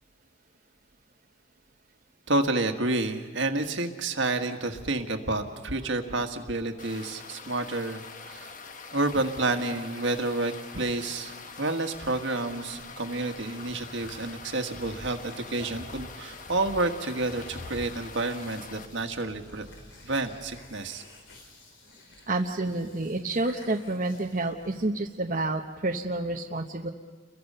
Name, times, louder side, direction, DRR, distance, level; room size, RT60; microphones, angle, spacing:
voice 1, 2.3-8.5 8.9-19.7 20.0-21.0, right 2 dB, 65° right, 5 dB, 1.7 m, -29 dB
sound 1, 6.8-18.9, left 5 dB, 40° left, 1.2 m, -45 dB
sound 2, 12.7-24.9, left 1 dB, 65° left, 3.7 m, -49 dB
voice 2, 22.3-26.9, right 2 dB, 40° right, 1 dB, 1.0 m, -29 dB
30.0 x 22.5 x 5.6 m, 1.5 s
head